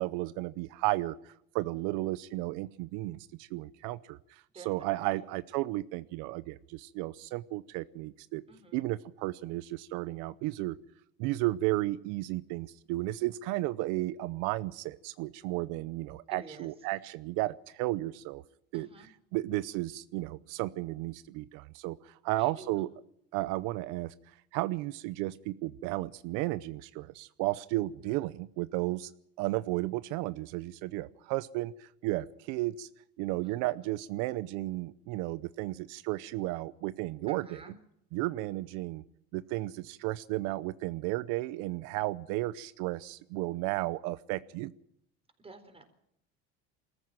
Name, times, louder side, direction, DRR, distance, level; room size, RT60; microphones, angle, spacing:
voice 1, 0.0-8.4 8.7-10.8 11.2-18.4 18.7-18.9 19.3-22.9 23.3-24.1 24.5-29.1 29.4-32.9 33.2-37.6 38.1-39.0 39.3-44.7, right 18 dB, 85° right, 15 dB, 0.7 m, -33 dB
voice 2, 4.5-5.2 8.5-8.8 16.3-16.7 18.7-19.1 22.4-22.8 33.4-33.9 37.3-37.8 45.4-45.8, right 3 dB, 20° right, 7 dB, 4.2 m, -51 dB
21.5 x 14.0 x 9.0 m, 0.75 s
cardioid pair, 115°, 30 cm